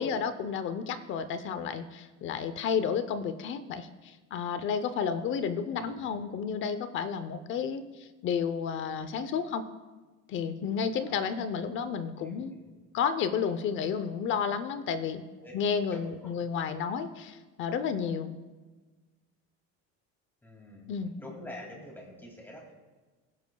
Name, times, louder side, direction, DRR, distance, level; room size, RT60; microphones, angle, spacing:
voice 1, 0.0-9.6 10.3-12.5 12.9-15.2 15.5-18.3 20.9-21.1, left 6 dB, 40° left, 11 dB, 0.7 m, -31 dB
voice 2, 5.7-6.1 11.1-11.3 12.2-12.8 15.4-15.5 16.2-16.4 20.4-20.9 21.2-22.7, left 1 dB, 5° left, -1 dB, 2.4 m, -47 dB
21.0 x 10.5 x 2.3 m, 1.3 s
cardioid pair, 180°, 30 cm